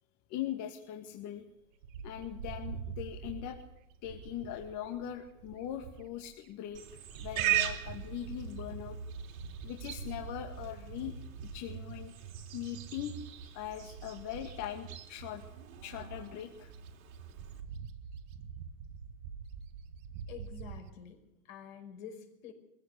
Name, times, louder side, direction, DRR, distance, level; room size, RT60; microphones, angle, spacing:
voice 1, 0.3-1.4 2.0-3.6 4.0-6.8 7.2-9.0 9.6-12.1 12.5-13.1 13.5-15.4 15.8-16.7, left 11 dB, 45° left, 4 dB, 2.1 m, -41 dB
Bird, 1.8-6.3 6.7-20.9, right 6 dB, 65° right, 1.6 m, -45 dB
Livestock farm animals working animals, 6.7-17.6, right 13 dB, 90° right, 3.7 m, -40 dB
voice 2, 20.3-22.5, left 7 dB, 70° left, 5 dB, 5.5 m, -48 dB
21.5 x 15.5 x 8.4 m, 0.86 s
supercardioid pair, 130°, 40 cm